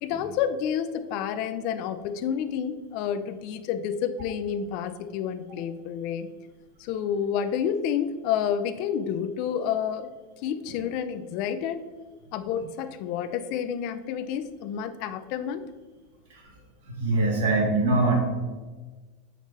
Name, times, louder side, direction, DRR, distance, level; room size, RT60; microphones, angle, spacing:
voice 1, 0.0-6.3 6.8-10.1 10.4-11.8 12.3-15.7, left 8 dB, 50° left, 11 dB, 0.4 m, -29 dB
voice 2, 17.0-18.2, right 2 dB, 75° right, -1 dB, 1.8 m, -22 dB
6.5 x 5.0 x 3.2 m, 1.3 s
supercardioid pair, 150°, 0 cm